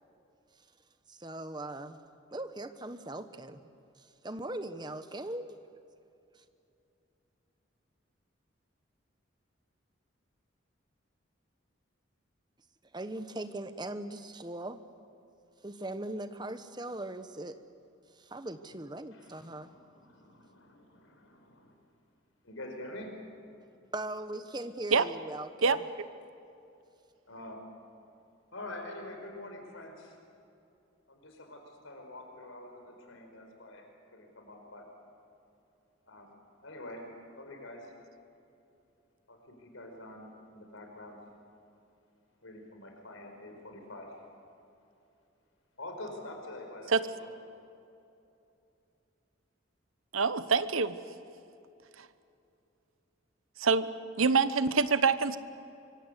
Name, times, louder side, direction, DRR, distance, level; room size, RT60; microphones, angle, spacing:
voice 1, 1.1-2.0 2.3-3.6 4.0-5.6 6.3-6.4 12.9-14.8 15.6-17.6 18.1-19.7 23.9-25.8, right 1 dB, 20° right, 10 dB, 1.0 m, -40 dB
voice 2, 19.1-21.7 22.4-23.1 27.3-27.7 28.5-30.2 31.1-33.9 34.1-34.9 36.1-36.3 36.6-37.1 37.3-37.9 39.3-41.2 42.4-44.2 45.8-47.3, left 1 dB, 75° left, 3 dB, 4.8 m, -46 dB
voice 3, 50.1-51.0 52.0-52.1 53.6-53.9 54.2-55.4, right 5 dB, 85° right, 13 dB, 1.0 m, -25 dB
25.5 x 23.5 x 8.2 m, 2.8 s
head